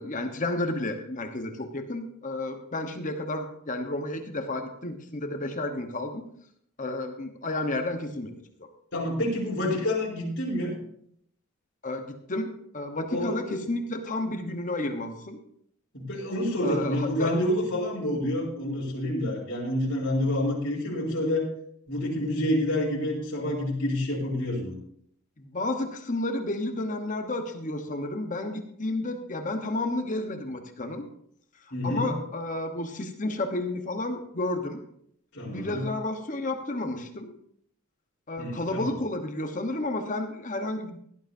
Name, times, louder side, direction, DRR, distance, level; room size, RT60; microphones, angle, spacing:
voice 1, 0.0-6.2 6.8-8.3 8.6-8.7 11.8-15.4 16.6-17.3 25.4-31.1 31.6-34.8 35.5-37.4 38.3-41.0, left 2 dB, 35° left, 5 dB, 1.1 m, -31 dB
voice 2, 8.9-10.7 13.1-13.4 15.9-21.4 21.9-24.7 31.7-32.1 35.3-35.8 38.4-38.9, left 1 dB, 55° left, -6 dB, 4.2 m, -28 dB
17.0 x 11.5 x 2.7 m, 0.68 s
head